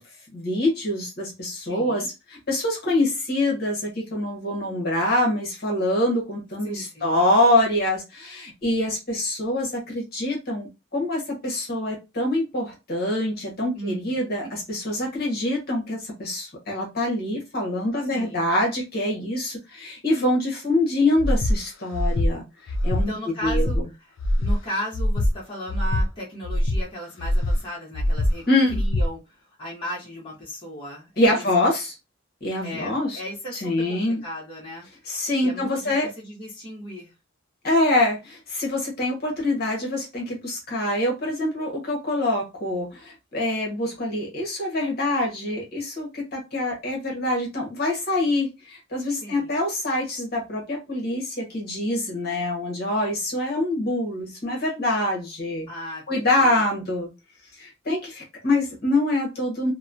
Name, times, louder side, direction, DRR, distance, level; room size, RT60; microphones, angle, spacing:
voice 1, 0.3-2.1 2.5-22.4 22.8-23.1 23.4-23.7 28.5-28.8 31.2-31.9 32.4-33.2 33.5-34.2 35.1-36.1 37.6-55.7 56.1-57.1 57.6-59.7, left 1 dB, 50° left, -2 dB, 1.1 m, -25 dB
voice 2, 1.6-2.1 6.6-7.2 13.7-14.1 18.1-18.5 22.9-28.4 28.7-31.8 32.6-35.0 35.4-37.1 49.2-49.5 55.7-56.6, equal, 25° left, -6 dB, 1.0 m, -36 dB
Breathing, 21.2-21.6 21.9-22.3 22.7-23.0 23.4-23.8 24.2-24.5 24.9-25.3 25.7-26.0 26.4-26.8 27.2-27.6 27.9-28.3 28.7-29.1, left 1 dB, 75° left, 0.5 m, -22 dB
3.0 x 2.0 x 2.5 m, 0.24 s
head